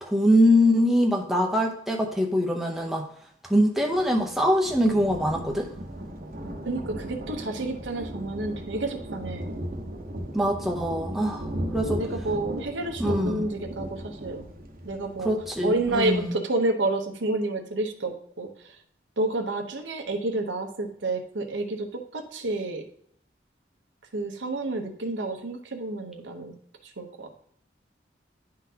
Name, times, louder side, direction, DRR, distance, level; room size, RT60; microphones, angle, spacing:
voice 1, 0.0-3.0 3.4-5.7 10.3-12.0 13.0-13.4 15.2-16.2, equal, ahead, 0 dB, 0.6 m, -23 dB
Thunder, 3.9-16.2, equal, 50° right, 0.8 m, -36 dB
voice 2, 6.6-9.6 12.0-14.5 14.8-15.3 15.6-18.8 19.2-22.8 24.1-26.5 26.8-27.3, right 2 dB, 85° right, 5 dB, 0.8 m, -30 dB
10.5 x 3.9 x 2.8 m, 0.65 s
head